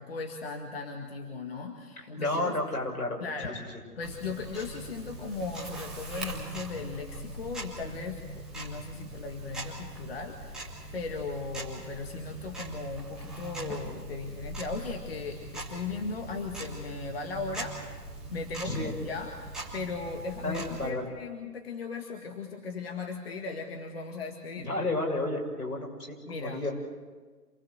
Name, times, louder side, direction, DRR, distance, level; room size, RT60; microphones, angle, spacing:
voice 1, 0.0-2.6 3.2-3.6 4.0-17.9 18.3-24.7 26.3-26.6, left 4 dB, 40° left, 3 dB, 1.9 m, -37 dB
voice 2, 2.0-3.2 18.6-18.9 20.4-21.1 24.6-26.7, left 2 dB, 70° left, 1 dB, 6.5 m, -31 dB
Tick-tock, 4.0-20.9, right 1 dB, ahead, 1.6 m, -41 dB
27.5 x 19.5 x 8.0 m, 1.4 s
figure-of-eight pair, 155°, 47 cm